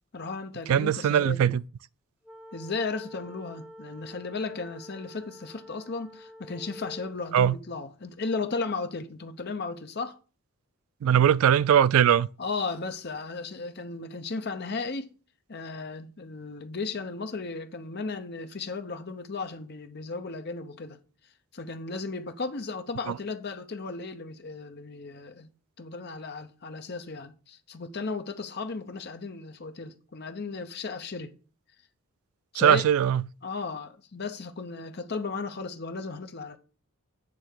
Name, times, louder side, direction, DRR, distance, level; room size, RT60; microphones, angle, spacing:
voice 1, 0.1-1.5 2.5-10.2 12.4-15.1 15.5-21.0 21.5-25.5 25.8-31.3 32.5-32.9 33.4-36.6, left 4 dB, 45° left, 0.7 m, -35 dB
voice 2, 0.7-1.6 7.3-7.6 11.0-12.3 23.1-23.2 32.6-33.2, right 9 dB, 70° right, 0.3 m, -20 dB
sound 1, 2.2-7.2, equal, 5° right, 1.2 m, -47 dB
8.5 x 3.4 x 6.3 m
head